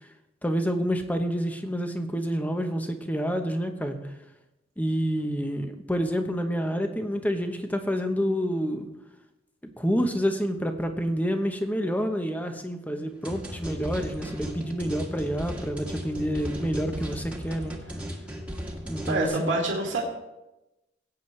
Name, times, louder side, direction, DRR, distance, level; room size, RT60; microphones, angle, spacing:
voice 1, 0.4-4.1 4.8-8.9 9.8-17.7 18.8-19.6, equal, 10° left, 6 dB, 1.0 m, -28 dB
sound 1, 13.2-19.3, equal, 5° right, 1.6 m, -36 dB
voice 2, 19.1-20.0, right 2 dB, 85° right, -1 dB, 2.3 m, -26 dB
17.5 x 8.9 x 3.3 m, 0.95 s
head